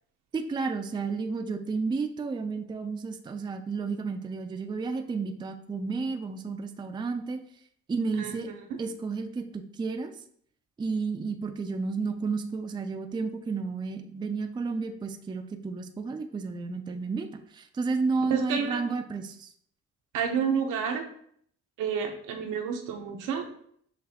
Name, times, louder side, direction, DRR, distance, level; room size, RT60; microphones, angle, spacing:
voice 1, 0.3-7.4 7.9-8.5 8.8-10.1 10.8-17.3 17.5-19.5, right 4 dB, 15° right, 6 dB, 0.3 m, -32 dB
voice 2, 18.3-18.8 20.1-21.0 21.8-23.5, right 6 dB, 80° right, 4 dB, 0.7 m, -29 dB
6.0 x 2.5 x 2.8 m, 0.64 s
cardioid pair, 90°, 30 cm